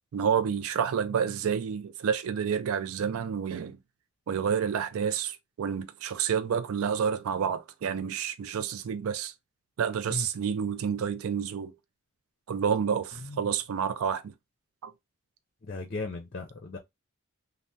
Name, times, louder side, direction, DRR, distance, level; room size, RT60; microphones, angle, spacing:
voice 1, 0.1-3.8 4.3-9.3 9.8-11.7 12.5-14.3 14.8-14.9, right 7 dB, 80° right, 0.4 m, -29 dB
voice 2, 15.6-16.8, left 3 dB, 40° left, 0.5 m, -35 dB
3.2 x 2.1 x 2.6 m
head